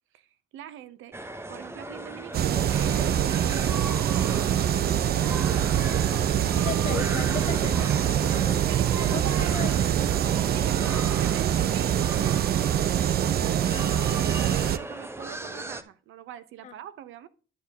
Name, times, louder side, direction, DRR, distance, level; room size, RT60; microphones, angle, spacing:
voice 1, 0.5-1.1 1.5-4.1 6.3-6.7 8.6-9.8 10.5-17.3, right 10 dB, 85° right, 0.7 m, -43 dB
sound 1, 1.1-15.8, right 1 dB, 10° right, 0.7 m, -38 dB
sound 2, 2.3-14.8, right 10 dB, 50° right, 0.5 m, -24 dB
voice 2, 6.6-8.6 9.1-9.7 13.7-14.1 16.6-16.7, left 8 dB, 35° left, 0.5 m, -37 dB
11.0 x 4.5 x 3.5 m
cardioid pair, 90°, 20 cm